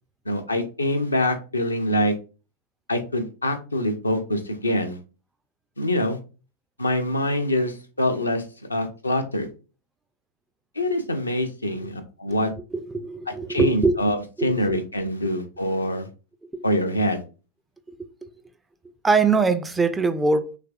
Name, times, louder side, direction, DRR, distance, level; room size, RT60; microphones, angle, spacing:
voice 1, 0.3-2.1 2.9-5.0 5.8-6.2 6.8-8.4 8.7-9.5 10.8-12.5 13.3-16.1 16.6-17.2, left 1 dB, 80° left, 0.5 m, -25 dB
voice 2, 12.7-14.0 14.4-14.5 16.5-16.6 19.0-20.6, right 4 dB, 10° right, 0.3 m, -22 dB
3.2 x 3.2 x 2.3 m
figure-of-eight pair, 90°, 0 cm